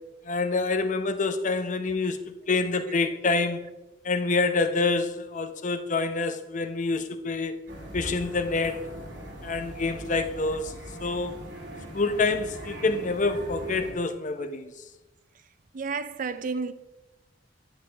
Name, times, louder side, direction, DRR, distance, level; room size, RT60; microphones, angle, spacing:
voice 1, 0.3-2.2 2.5-3.6 4.0-7.6 7.9-8.8 9.4-11.4 11.9-14.7, left 3 dB, 45° left, 0.7 m, -27 dB
sound 1, 7.7-13.9, right 1 dB, 75° right, 2.1 m, -41 dB
voice 2, 15.7-16.7, right 4 dB, 45° right, 0.5 m, -31 dB
10.0 x 8.3 x 3.4 m
head